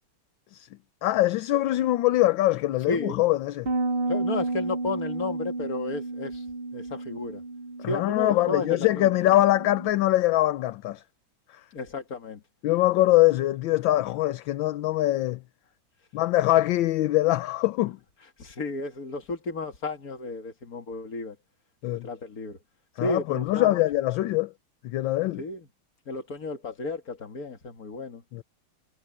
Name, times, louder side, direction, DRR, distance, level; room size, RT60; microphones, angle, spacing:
voice 1, 1.0-3.7 7.8-11.0 11.5-11.6 12.6-15.4 16.1-18.0 21.8-22.1 23.0-24.5 24.8-25.4 28.3-28.4, left 16 dB, 75° left, 1.4 m, -23 dB
voice 2, 2.9-3.2 4.1-6.4 6.7-7.4 7.8-9.1 11.7-12.4 18.4-21.4 21.9-22.6 23.0-23.8 25.4-25.7 26.1-28.2, left 3 dB, 45° left, 2.4 m, -33 dB
Bass guitar, 3.7-9.9, right 2 dB, 40° right, 1.0 m, -32 dB
omnidirectional pair, 2.2 m